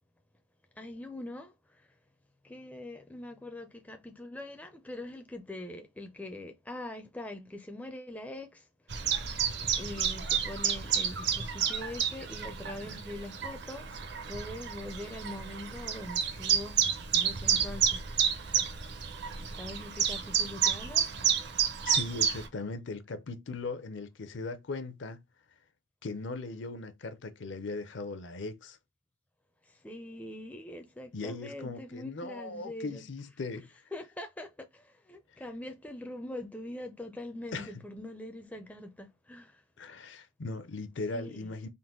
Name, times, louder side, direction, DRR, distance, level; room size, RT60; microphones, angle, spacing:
voice 1, 0.8-1.9 2.4-8.7 9.0-9.4 9.8-14.0 14.3-16.8 17.1-18.1 18.4-18.7 19.5-21.1 29.7-33.0 33.9-39.6 41.1-41.5, left 1 dB, 5° left, 0.4 m, -43 dB
Chirp tweet, 8.9-22.5, right 8 dB, 55° right, 0.6 m, -30 dB
voice 2, 21.8-25.2 26.0-28.8 31.1-33.7 37.5-37.8 39.8-41.7, left 3 dB, 60° left, 0.5 m, -38 dB
3.9 x 2.5 x 3.6 m
head